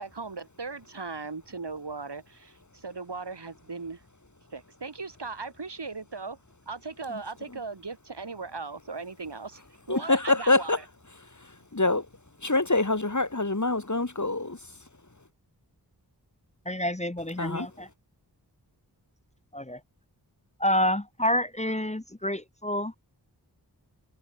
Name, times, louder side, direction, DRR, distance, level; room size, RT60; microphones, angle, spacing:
voice 1, 0.0-4.0 4.5-6.4 6.7-9.6 9.9-10.7, right 4 dB, 90° right, 5.2 m, -38 dB
voice 2, 9.9-10.8 11.4-12.1 12.4-14.6 17.4-17.7, left 2 dB, 45° left, 4.9 m, -25 dB
voice 3, 16.6-17.9 19.5-19.8 20.6-23.0, left 1 dB, 15° left, 1.6 m, -28 dB
wide cardioid pair, 45°, 40 cm